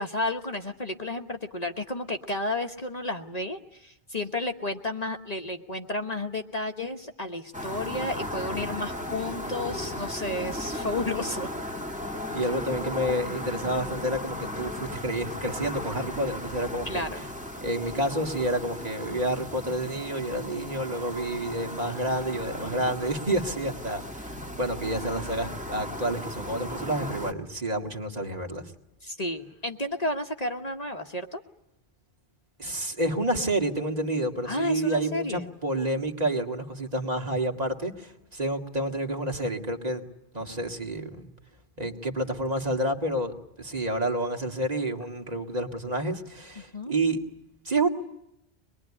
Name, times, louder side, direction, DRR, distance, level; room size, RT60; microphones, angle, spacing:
voice 1, 0.0-11.5 12.3-12.4 16.9-17.3 29.0-31.4 34.4-35.5 46.6-46.9, left 1 dB, 35° left, 5 dB, 1.3 m, -32 dB
sound 1, 7.5-27.3, left 1 dB, 5° right, 1.7 m, -36 dB
voice 2, 12.3-17.0 17.6-28.7 32.6-40.0 40.3-41.3 41.8-47.2 47.7-47.9, right 1 dB, 35° right, 3 dB, 2.0 m, -29 dB
24.5 x 21.5 x 9.8 m, 0.83 s
omnidirectional pair, 1.1 m